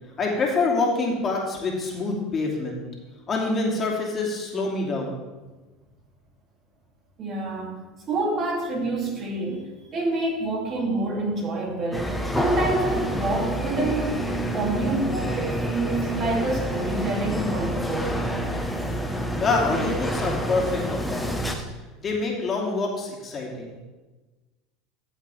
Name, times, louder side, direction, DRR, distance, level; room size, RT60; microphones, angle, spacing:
voice 1, 0.2-2.8 3.3-5.2 19.4-21.6 22.0-23.7, left 3 dB, 30° left, -1 dB, 2.7 m, -26 dB
voice 2, 7.2-7.8 8.1-14.3 14.5-18.2, right 2 dB, 40° right, -1 dB, 2.8 m, -27 dB
sound 1, 11.9-21.6, equal, 5° left, 1.2 m, -28 dB
13.0 x 7.3 x 3.5 m, 1.2 s
hypercardioid pair, 80°, 0 cm